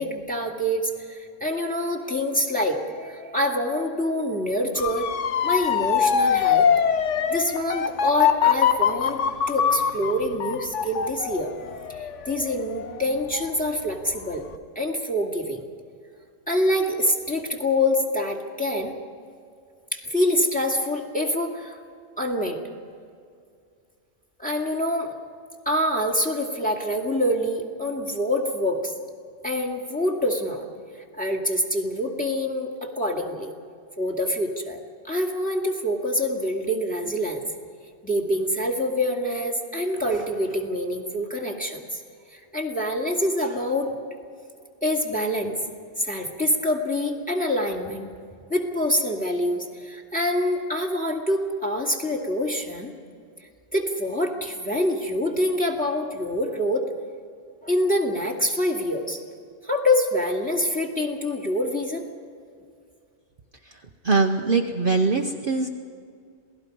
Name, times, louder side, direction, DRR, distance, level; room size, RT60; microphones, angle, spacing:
voice 1, 0.0-5.1 5.4-6.7 7.3-9.2 9.5-14.4 14.8-15.7 16.5-19.0 19.9-21.8 22.2-22.6 24.4-25.1 25.7-28.9 29.4-30.7 31.1-33.5 34.0-34.8 35.0-37.4 38.0-42.0 42.3-44.0 44.8-45.6 46.0-48.1 48.5-53.0 53.7-56.8 57.6-59.2 59.6-62.1, left 1 dB, 5° left, 2 dB, 2.2 m, -26 dB
Motor vehicle (road) / Siren, 4.8-13.7 14.1-14.5, left 8 dB, 70° left, 1.1 m, -23 dB
voice 2, 64.0-65.7, right 3 dB, 45° right, 3 dB, 1.0 m, -22 dB
27.5 x 18.0 x 5.4 m, 2.3 s
omnidirectional pair, 1.3 m